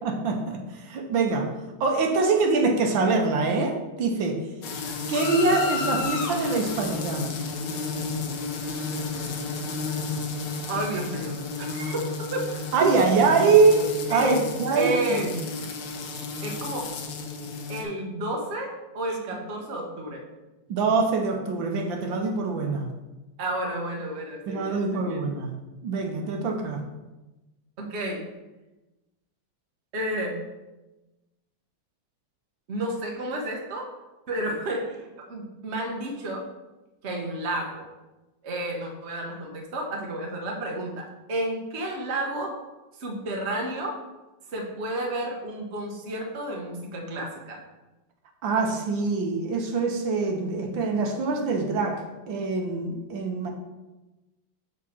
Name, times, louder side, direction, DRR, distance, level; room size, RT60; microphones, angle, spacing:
voice 1, 0.0-1.5 1.8-4.4 5.1-7.3 12.7-15.5 20.7-22.9 24.5-25.6 25.8-26.9 48.4-53.5, right 4 dB, 75° right, 2 dB, 1.6 m, -24 dB
sound 1, 4.6-17.8, left 4 dB, 70° left, 1.5 m, -32 dB
voice 2, 10.7-11.3 11.6-13.1 14.1-14.4 14.7-15.3 16.4-16.9 17.7-20.2 23.4-25.2 27.8-28.2 29.9-30.4 32.7-33.9 34.3-36.4 37.0-37.8 38.4-42.5 43.0-44.0 44.5-47.6, right 1 dB, 40° right, 0 dB, 1.3 m, -31 dB
6.2 x 6.1 x 4.4 m, 1.1 s
omnidirectional pair, 2.1 m